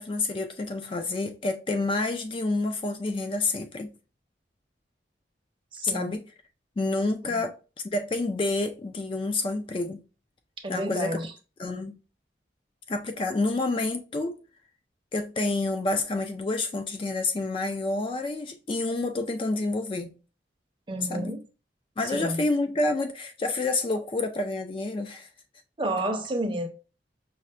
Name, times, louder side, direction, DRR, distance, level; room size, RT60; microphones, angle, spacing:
voice 1, 0.0-3.9 5.8-6.3 6.8-7.6 7.9-10.0 10.7-11.3 11.6-12.0 12.9-14.4 15.1-20.1 21.0-21.3 22.0-25.3, left 2 dB, 30° left, 0.3 m, -28 dB
voice 2, 5.7-6.1 7.3-7.4 10.6-11.3 20.9-21.4 22.1-22.4 25.8-26.7, right 1 dB, 30° right, 0.6 m, -30 dB
5.4 x 2.1 x 2.4 m
head